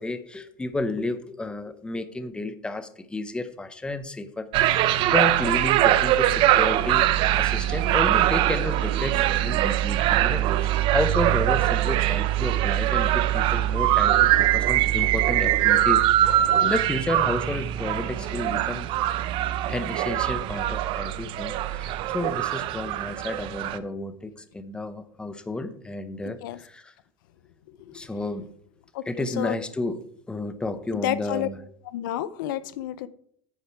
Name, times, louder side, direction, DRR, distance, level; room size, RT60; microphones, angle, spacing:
voice 1, 0.0-18.9 19.6-26.9 27.9-28.5 29.0-31.6, left 2 dB, 10° left, 11 dB, 0.7 m, -32 dB
sound 1, 4.5-23.8, right 13 dB, 55° right, 0.6 m, -22 dB
voice 2, 26.3-26.6 28.9-29.6 31.0-31.5 31.9-33.1, left 13 dB, 85° left, 16 dB, 0.5 m, -30 dB
9.5 x 6.6 x 4.6 m, 0.67 s
supercardioid pair, 125°, 11 cm